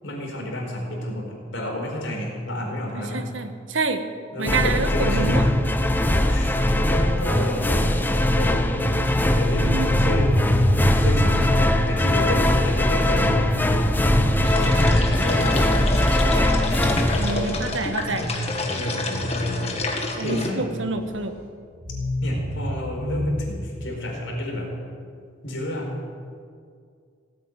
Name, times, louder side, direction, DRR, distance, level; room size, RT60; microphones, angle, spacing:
voice 1, 0.0-3.3 4.3-5.5 6.1-10.3 11.0-11.5 11.9-13.6 14.6-16.1 18.7-19.9 20.2-20.6 22.2-24.7 25.4-25.9, left 1 dB, 70° left, -1 dB, 4.5 m, -30 dB
voice 2, 2.9-4.1 4.4-5.5 9.6-9.9 17.2-18.3 20.2-21.4, right 3 dB, 75° right, 8 dB, 1.3 m, -27 dB
sound 1, 4.4-18.1, left 1 dB, 10° left, 0.8 m, -21 dB
sound 2, 9.5-15.9 16.2-16.3 16.6-21.3 21.7-23.4, equal, 40° right, 3.8 m, -27 dB
sound 3, 14.4-20.5, left 3 dB, 35° left, 1.7 m, -30 dB
18.0 x 8.5 x 9.0 m, 2.2 s
head